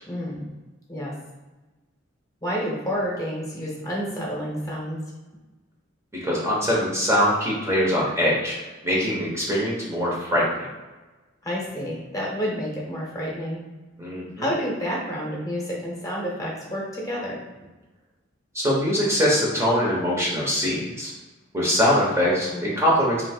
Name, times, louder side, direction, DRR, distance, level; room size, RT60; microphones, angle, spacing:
voice 1, 0.1-0.4 0.9-1.1 2.4-5.0 11.4-13.6 14.4-17.4 22.5-22.8, equal, 15° left, -4 dB, 1.1 m, -29 dB
voice 2, 6.2-8.6 8.8-10.7 14.0-14.5 18.5-21.1 21.5-23.3, equal, 15° right, -5 dB, 1.0 m, -22 dB
3.2 x 2.8 x 4.4 m, 1.2 s
head